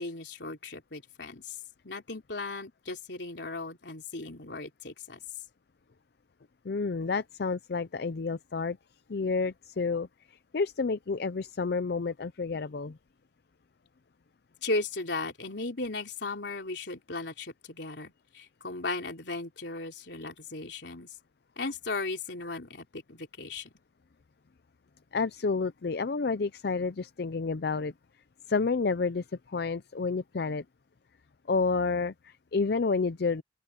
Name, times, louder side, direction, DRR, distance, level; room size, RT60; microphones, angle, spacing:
voice 1, 0.0-1.6 1.8-5.2 14.6-21.1 21.6-23.7, left 3 dB, 75° left, 3.5 m, -36 dB
voice 2, 6.6-8.8 9.1-13.0 25.1-27.9 28.5-30.6 31.5-33.4, left 4 dB, 60° left, 0.5 m, -30 dB
open air
head